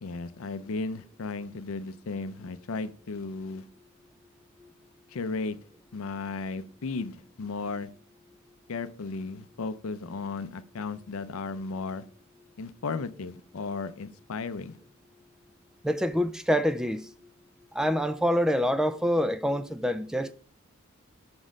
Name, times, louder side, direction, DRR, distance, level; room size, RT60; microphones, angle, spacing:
voice 1, 0.0-3.7 5.1-5.6 5.9-7.9 8.7-12.1 12.6-14.8, left 4 dB, 70° left, 0.5 m, -35 dB
voice 2, 15.8-17.1 17.7-20.3, equal, 5° right, 0.3 m, -26 dB
6.2 x 6.1 x 5.1 m
head